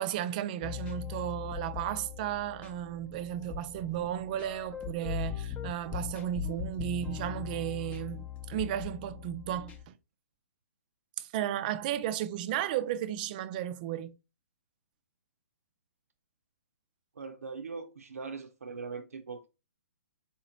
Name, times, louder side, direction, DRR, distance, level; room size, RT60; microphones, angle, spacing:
voice 1, 0.0-10.0 11.2-14.2, right 11 dB, 35° right, 0.4 m, -34 dB
sound 1, 0.6-9.8, left 9 dB, 15° left, 0.6 m, -40 dB
voice 2, 17.2-19.5, right 5 dB, 85° right, 0.6 m, -41 dB
4.2 x 2.9 x 3.8 m
hypercardioid pair, 140°, 8 cm